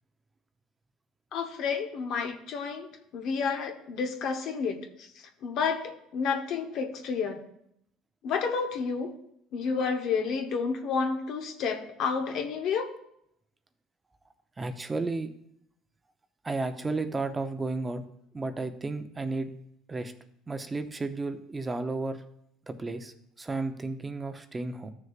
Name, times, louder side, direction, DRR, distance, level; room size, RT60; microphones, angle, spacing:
voice 1, 1.3-5.1 5.4-7.4 8.2-9.1 9.5-12.9, left 5 dB, 60° left, 5 dB, 1.1 m, -30 dB
voice 2, 14.6-15.3 16.4-18.1 18.3-19.5 19.9-20.1 20.5-22.2 22.7-24.9, right 3 dB, 20° right, 8 dB, 0.7 m, -33 dB
13.5 x 6.5 x 2.4 m, 0.74 s
cardioid pair, 110°, 0 cm